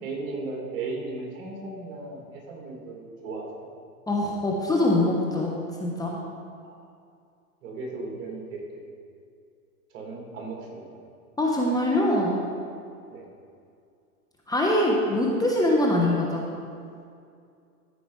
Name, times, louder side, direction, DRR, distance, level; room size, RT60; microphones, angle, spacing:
voice 1, 0.0-3.7 6.6-6.7 7.6-8.9 9.9-11.0 13.1-13.3, right 3 dB, 55° right, 0 dB, 2.4 m, -36 dB
voice 2, 4.1-6.2 11.4-12.4 14.5-16.4, left 1 dB, 10° left, -3 dB, 1.0 m, -23 dB
14.0 x 5.0 x 4.7 m, 2.3 s
hypercardioid pair, 125°, 45 cm